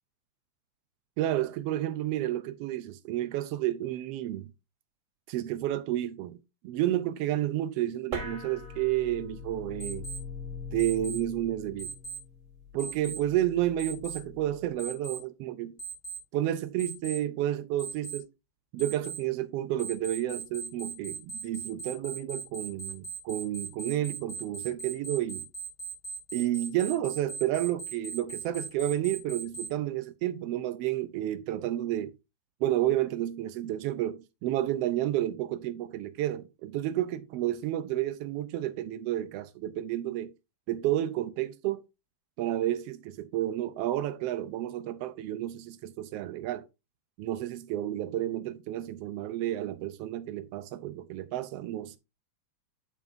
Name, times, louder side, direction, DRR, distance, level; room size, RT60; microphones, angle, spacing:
voice 1, 1.2-4.5 5.3-10.1 10.7-11.9 12.7-15.8 16.3-18.3 18.7-25.5 26.3-32.1 32.6-40.3 40.7-41.8 42.4-46.6 47.2-52.0, right 13 dB, 85° right, 1.4 m, -31 dB
sound 1, 8.1-14.9, left 3 dB, 40° right, 1.1 m, -42 dB
Alarm, 9.8-10.2 10.8-11.2 11.8-12.2 12.8-13.2 13.8-14.2 14.8-15.2 15.8-16.2 16.8-17.2 17.8-18.2 18.8-19.2 19.8-29.7, right 5 dB, 25° left, 2.4 m, -38 dB
8.6 x 7.0 x 2.6 m
omnidirectional pair, 3.4 m